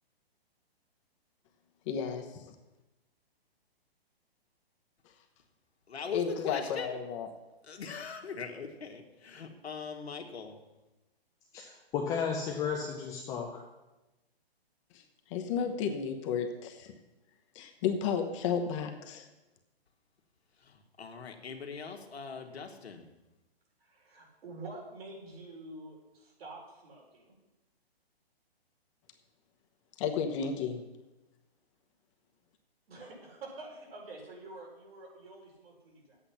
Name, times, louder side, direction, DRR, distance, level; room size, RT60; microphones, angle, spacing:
voice 1, 1.9-2.5 6.1-7.3 14.9-15.0 15.3-16.9 17.5-19.3 30.0-30.8, left 7 dB, 30° left, 4 dB, 1.0 m, -33 dB
voice 2, 5.9-7.0 7.7-10.6 20.6-23.1, left 5 dB, 85° left, 3 dB, 1.7 m, -40 dB
voice 3, 11.5-13.6, left 6 dB, 10° left, 0 dB, 0.4 m, -34 dB
voice 4, 23.8-27.4 32.9-36.2, right 2 dB, 65° right, -2 dB, 4.7 m, -47 dB
10.0 x 8.3 x 5.7 m, 1.0 s
hypercardioid pair, 145°, 31 cm